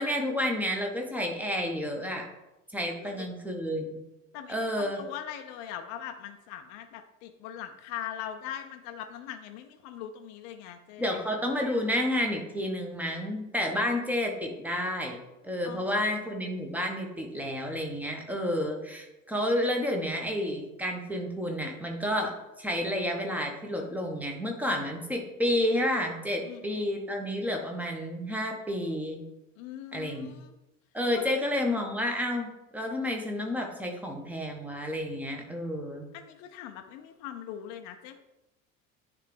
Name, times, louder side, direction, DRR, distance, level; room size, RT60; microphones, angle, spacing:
voice 1, 0.0-2.3 2.7-4.0 4.5-5.0 11.0-15.2 15.4-29.2 29.9-30.4 30.9-32.5 32.7-36.1, left 1 dB, 5° right, 2 dB, 1.1 m, -30 dB
voice 2, 2.9-3.3 4.3-11.2 15.7-16.2 26.4-26.8 29.6-30.5 31.1-31.3 36.1-38.2, left 10 dB, 45° left, 6 dB, 0.6 m, -41 dB
10.0 x 3.4 x 3.3 m, 0.96 s
figure-of-eight pair, 65°, 40 cm